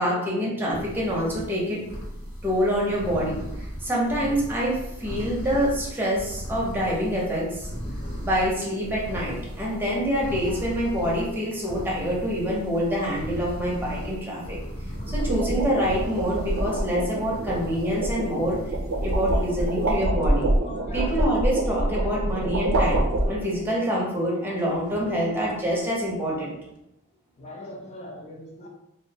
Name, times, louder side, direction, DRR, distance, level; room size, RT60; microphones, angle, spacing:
voice 1, 0.0-1.8 2.4-3.4 3.8-7.7 8.2-14.6 15.1-18.6 19.0-20.5 20.9-26.5, equal, 10° right, -5 dB, 0.6 m, -26 dB
sound 1, 0.7-20.0, equal, 70° left, 1.1 m, -37 dB
voice 2, 4.1-4.4 7.8-8.6 9.5-10.1 10.5-10.6 14.8-15.4 17.8-18.0 18.9-19.3 19.6-19.9 20.6-21.3 22.0-22.1 22.4-22.8 23.2-23.4 27.4-28.7, left 1 dB, 30° left, -1 dB, 0.5 m, -43 dB
sound 2, 9.4-9.7 14.8-23.7, right 1 dB, 90° right, 0.5 m, -26 dB
2.4 x 2.1 x 2.7 m, 0.85 s
head